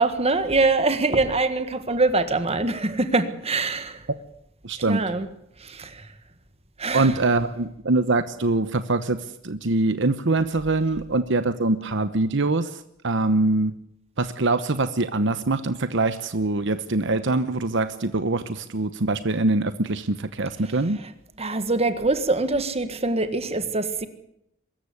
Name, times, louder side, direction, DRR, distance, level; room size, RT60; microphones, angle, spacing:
voice 1, 0.0-4.0 4.9-5.3 5.6-6.1 6.8-7.1 21.4-24.1, right 3 dB, 30° right, 10 dB, 1.7 m, -23 dB
voice 2, 4.6-5.0 6.9-9.2 9.4-12.7 13.0-13.7 14.2-21.0, right 2 dB, 65° right, 11 dB, 1.0 m, -23 dB
23.5 x 14.0 x 9.8 m, 0.77 s
head